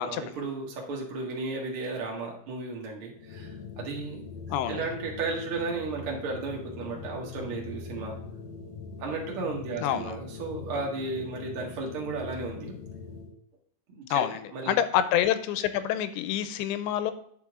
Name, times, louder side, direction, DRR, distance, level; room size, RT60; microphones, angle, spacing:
voice 1, 0.0-4.2 4.7-8.2 9.0-12.7 13.9-14.2 14.5-14.7, right 3 dB, 75° right, -1 dB, 1.2 m, -34 dB
sound 1, 3.1-13.4, left 5 dB, 70° left, 2.2 m, -42 dB
voice 2, 4.5-4.8 9.8-10.2 14.1-17.1, left 10 dB, 85° left, 11 dB, 2.8 m, -27 dB
10.0 x 5.7 x 3.6 m, 0.66 s
omnidirectional pair, 5.2 m